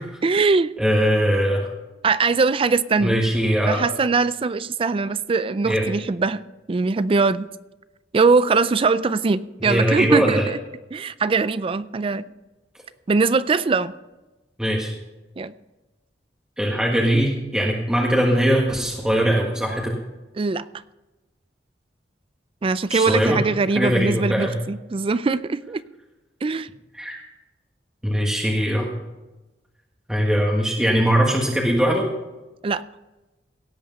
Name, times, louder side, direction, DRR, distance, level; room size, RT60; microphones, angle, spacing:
voice 1, 0.0-0.7 2.0-3.2 3.7-6.4 6.7-7.5 8.1-10.6 10.9-12.3 13.1-13.9 15.4-15.5 20.4-20.7 22.6-25.8 26.4-26.7 32.6-32.8, right 4 dB, 30° right, 16 dB, 0.4 m, -21 dB
voice 2, 0.8-1.7 3.0-3.8 5.6-5.9 9.6-10.5 14.6-14.9 16.6-19.9 22.9-23.4 23.7-24.5 26.9-27.2 28.0-28.9 30.1-32.0, equal, 5° right, -3 dB, 1.6 m, -21 dB
17.0 x 8.6 x 5.4 m, 1.1 s
head